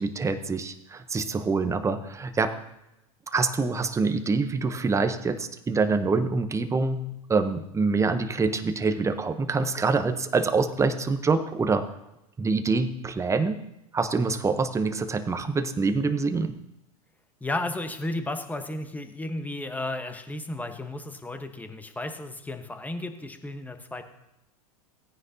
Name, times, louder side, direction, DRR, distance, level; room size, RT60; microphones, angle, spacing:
voice 1, 0.0-2.6 3.3-11.9 12.4-13.6 13.9-16.6, right 4 dB, 15° right, 9 dB, 0.9 m, -25 dB
voice 2, 17.4-24.0, left 2 dB, 10° left, 7 dB, 1.1 m, -33 dB
17.0 x 9.6 x 2.8 m, 0.88 s
hypercardioid pair, 95°, 19 cm